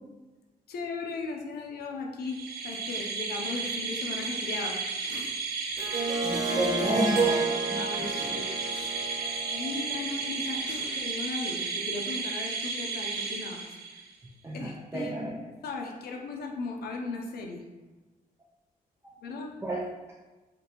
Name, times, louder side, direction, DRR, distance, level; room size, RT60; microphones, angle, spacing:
voice 1, 0.7-4.8 5.0-5.3 7.8-8.9 9.5-13.7 14.5-15.2 15.6-17.6 19.2-19.5, left 3 dB, 80° left, 2 dB, 0.6 m, -37 dB
sound 1, 2.3-14.1, right 4 dB, 90° right, 0.7 m, -33 dB
Harp, 5.8-10.7, right 3 dB, 55° right, 1.0 m, -31 dB
voice 2, 6.2-8.4 9.2-9.7 10.9-11.0 14.4-15.5 19.0-19.2 19.6-20.1, right 1 dB, 15° right, -5 dB, 0.4 m, -33 dB
5.2 x 2.6 x 2.9 m, 1.2 s
wide cardioid pair, 155°, 16 cm